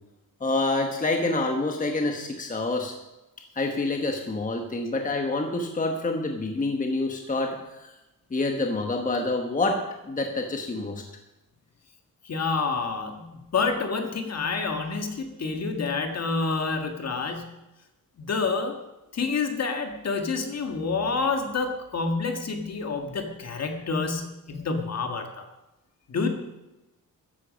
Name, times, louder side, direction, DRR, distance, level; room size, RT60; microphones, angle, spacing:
voice 1, 0.4-2.9 3.6-7.9 8.3-11.0, left 2 dB, 25° left, 3 dB, 1.1 m, -27 dB
voice 2, 12.2-17.5 18.2-18.8 19.1-25.4 26.1-26.3, left 4 dB, 45° left, 5 dB, 1.7 m, -28 dB
14.0 x 10.5 x 5.2 m, 1.0 s
wide cardioid pair, 170°, 35 cm